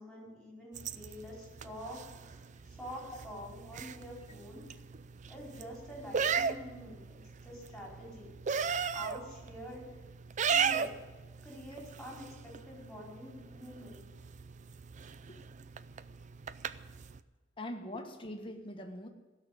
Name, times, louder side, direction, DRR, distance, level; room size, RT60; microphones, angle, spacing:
voice 1, 0.0-4.8 5.3-8.3 8.9-9.8 10.5-11.0 11.4-14.0, equal, ahead, -4 dB, 4.9 m, -47 dB
sound 1, 0.7-17.2, right 6 dB, 40° right, 0.4 m, -38 dB
voice 2, 17.6-19.1, left 1 dB, 25° left, 3 dB, 1.6 m, -42 dB
16.0 x 6.6 x 9.6 m, 1.2 s
head